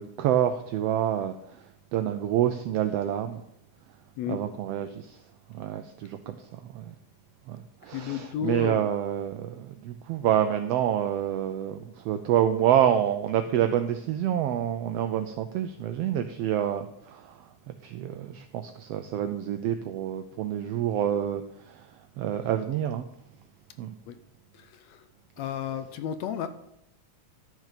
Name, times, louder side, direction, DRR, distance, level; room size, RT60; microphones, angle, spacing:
voice 1, 0.0-3.4 4.3-5.2 5.5-6.9 7.5-23.1 23.8-23.9, right 10 dB, 90° right, 8 dB, 1.4 m, -28 dB
voice 2, 7.9-8.8 24.1-24.2 24.6-25.0 25.4-26.5, left 9 dB, 75° left, 10 dB, 1.7 m, -33 dB
12.0 x 6.4 x 5.1 m, 0.78 s
omnidirectional pair, 3.4 m